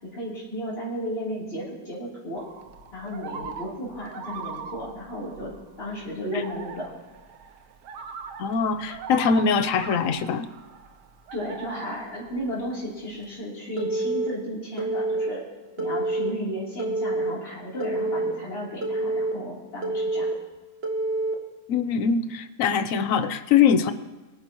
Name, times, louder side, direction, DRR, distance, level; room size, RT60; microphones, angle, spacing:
voice 1, 0.0-2.4 2.9-5.5 5.8-6.9 11.3-15.4 15.8-20.3, equal, 35° left, -7 dB, 3.6 m, -34 dB
sound 1, 2.4-13.2, right 6 dB, 85° right, 1.5 m, -41 dB
voice 2, 8.4-10.5 21.7-23.9, left 6 dB, 65° left, 12 dB, 0.9 m, -22 dB
Telephone, 13.8-14.3 14.8-15.3 15.8-16.3 16.8-17.3 17.8-18.3 18.8-19.3 19.8-20.3 20.8-21.3, right 2 dB, 40° right, 1.3 m, -27 dB
23.0 x 9.6 x 3.0 m, 1.2 s
omnidirectional pair, 1.7 m